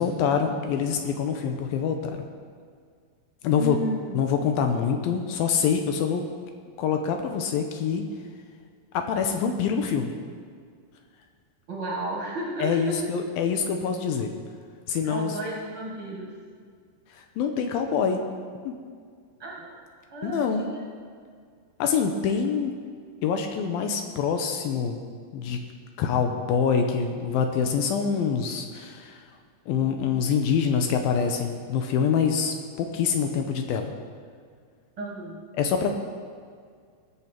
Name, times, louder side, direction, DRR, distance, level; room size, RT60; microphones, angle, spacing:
voice 1, 0.0-2.3 3.4-3.8 4.1-6.2 6.8-8.0 8.9-10.2 12.6-14.3 14.9-15.4 17.4-18.2 18.6-18.8 20.2-20.7 21.8-22.7 23.2-25.0 25.3-25.6 26.0-29.2 29.7-33.9 35.6-35.9, left 6 dB, 80° left, 5 dB, 2.4 m, -25 dB
voice 2, 3.5-4.2 11.7-13.0 15.0-16.3 19.4-19.8 20.0-20.8 35.0-35.4, right 1 dB, 45° right, -3 dB, 1.9 m, -33 dB
21.5 x 7.2 x 4.5 m, 2.1 s
omnidirectional pair, 4.5 m